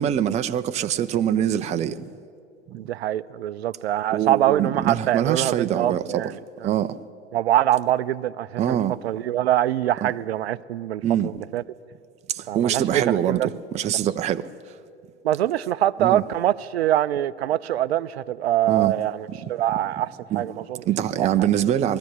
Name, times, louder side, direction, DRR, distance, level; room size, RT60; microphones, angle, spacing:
voice 1, 0.0-2.0 4.1-6.2 6.6-7.0 8.6-8.9 10.0-10.1 11.0-11.3 12.3-14.5 16.0-16.2 18.7-18.9 20.3-20.4 20.9-22.0, right 10 dB, 20° right, 0.6 m, -24 dB
voice 2, 2.7-6.3 6.6-6.7 7.3-8.8 9.0-11.6 12.5-13.5 15.2-20.8 21.2-21.3, right 12 dB, 65° right, 0.6 m, -24 dB
19.5 x 14.0 x 10.0 m
figure-of-eight pair, 95°, 34 cm